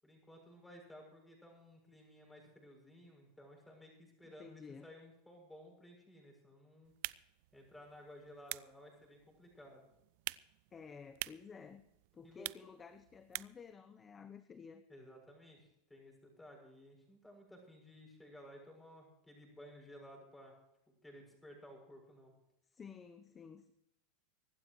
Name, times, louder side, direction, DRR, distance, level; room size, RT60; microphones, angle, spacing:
voice 1, 0.0-6.9 7.5-9.9 12.2-12.5 14.9-20.5 21.0-22.3, equal, 5° left, 1 dB, 7.2 m, -56 dB
voice 2, 4.2-4.9 10.7-11.8 12.1-14.8 22.7-23.7, left 6 dB, 25° left, 10 dB, 0.9 m, -53 dB
sound 1, 6.8-13.7, right 21 dB, 65° right, 0.4 m, -48 dB
24.5 x 12.0 x 3.2 m, 0.85 s
hypercardioid pair, 110°, 0 cm